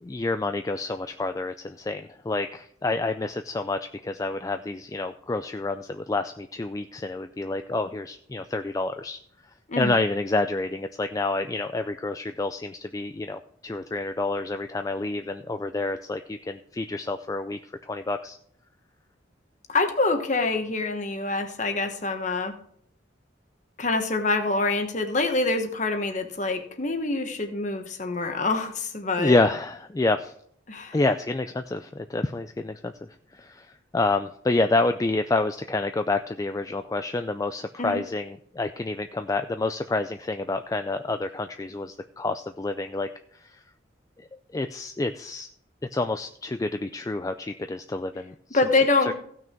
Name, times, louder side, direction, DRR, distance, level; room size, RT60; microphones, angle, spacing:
voice 1, 0.0-9.2 9.8-18.4 29.2-30.3 30.9-32.9 33.3-43.6 44.3-45.5 45.9-48.6 49.1-49.2, left 2 dB, 20° left, 8 dB, 0.3 m, -28 dB
voice 2, 9.7-10.0 19.7-22.5 23.8-29.4 30.7-31.0 37.8-38.0 48.5-49.1, left 3 dB, 40° left, 6 dB, 1.2 m, -25 dB
16.0 x 6.1 x 4.5 m, 0.65 s
head